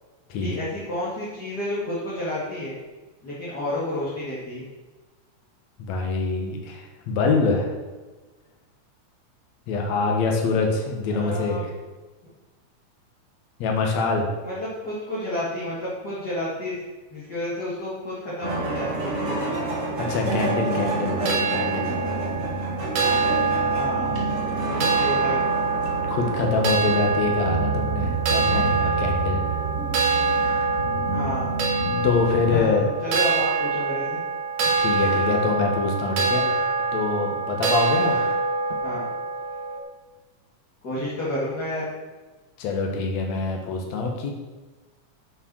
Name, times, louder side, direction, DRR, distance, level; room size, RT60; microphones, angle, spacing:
voice 1, 0.4-2.8 3.2-4.6 11.1-11.6 14.4-16.7 17.1-19.8 23.7-24.2 24.7-25.4 31.1-31.5 32.5-34.2 38.8-39.0 40.8-41.9, left 1 dB, 35° left, -8 dB, 2.9 m, -30 dB
voice 2, 5.8-7.7 9.7-11.6 13.6-14.3 20.0-22.0 26.1-29.7 32.0-32.9 34.8-36.5 36.9-38.3 42.6-44.3, left 4 dB, 65° left, 2 dB, 2.7 m, -25 dB
sound 1, 18.4-32.6, right 2 dB, 30° right, 2.1 m, -29 dB
sound 2, 20.4-39.8, right 4 dB, 70° right, 2.9 m, -25 dB
9.1 x 7.8 x 6.4 m, 1.2 s
omnidirectional pair, 3.5 m